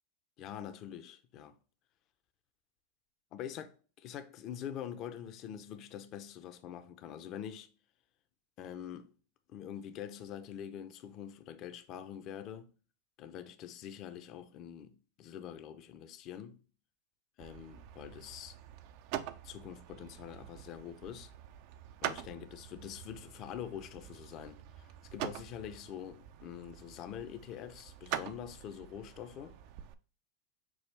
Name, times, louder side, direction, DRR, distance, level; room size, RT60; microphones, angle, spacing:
voice 1, 0.4-1.6 3.3-3.7 4.0-7.7 8.6-9.1 9.5-12.7 13.2-16.6 17.4-18.6 19.4-21.3 22.0-29.6, left 9 dB, 45° left, 0.6 m, -45 dB
sound 1, 17.4-29.9, right 11 dB, 55° right, 0.4 m, -45 dB
6.1 x 2.3 x 3.3 m
hypercardioid pair, 105°, 0 cm